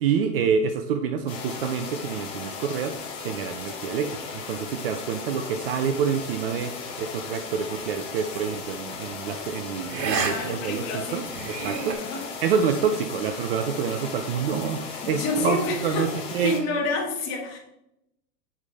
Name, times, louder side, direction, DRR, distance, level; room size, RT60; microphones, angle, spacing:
voice 1, 0.0-12.1 12.4-15.6 15.8-16.6, right 7 dB, 35° right, 7 dB, 0.5 m, -27 dB
sound 1, 1.3-16.6, left 5 dB, 10° left, 0.4 m, -37 dB
sound 2, 8.3-8.5 9.9-10.3 10.7-10.8 11.3-11.9, right 5 dB, 75° right, 1.8 m, -29 dB
voice 2, 10.1-11.3 12.0-12.3 15.0-16.1 16.4-17.6, left 3 dB, 35° left, 1 dB, 2.0 m, -29 dB
7.3 x 5.0 x 4.1 m, 0.81 s
hypercardioid pair, 130°, 49 cm